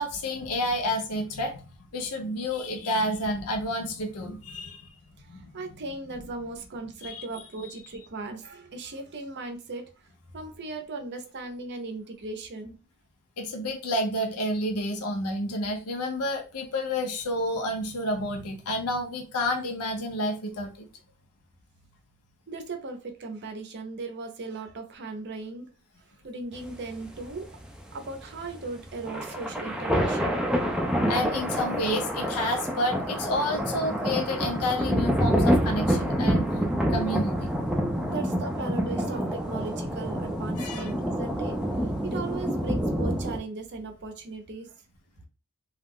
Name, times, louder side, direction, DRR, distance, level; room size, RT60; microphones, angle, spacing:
voice 1, 0.0-5.0 5.3-5.6 7.0-7.2 13.4-20.9 31.1-36.6 36.9-37.5 40.6-40.9, left 1 dB, 80° left, 4 dB, 0.6 m, -30 dB
voice 2, 5.2-10.1 10.3-12.8 22.5-25.7 26.2-27.5 27.9-30.5 38.1-41.6 42.0-44.8, right 3 dB, 50° right, 5 dB, 0.5 m, -37 dB
sound 1, 26.5-43.4, equal, 5° right, 0.3 m, -27 dB
2.3 x 2.0 x 3.5 m, 0.33 s
head